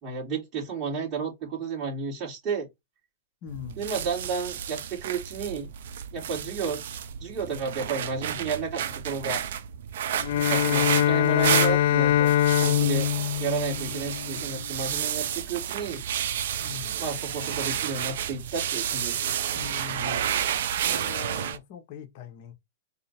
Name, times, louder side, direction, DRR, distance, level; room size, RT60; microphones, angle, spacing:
voice 1, 0.0-2.7 3.8-5.7 6.1-6.8 7.2-9.4 10.4-12.3 12.6-13.1 13.4-16.0 17.0-19.3, right 5 dB, 30° right, 2.6 m, -32 dB
voice 2, 3.4-3.8 16.6-17.0 19.6-20.2 20.8-22.5, left 10 dB, 45° left, 1.0 m, -41 dB
sound 1, 3.5-21.6, right 9 dB, 65° right, 0.6 m, -31 dB
Bowed string instrument, 10.2-14.6, left 11 dB, 60° left, 0.3 m, -23 dB
4.1 x 2.7 x 4.2 m
hypercardioid pair, 140°, 0 cm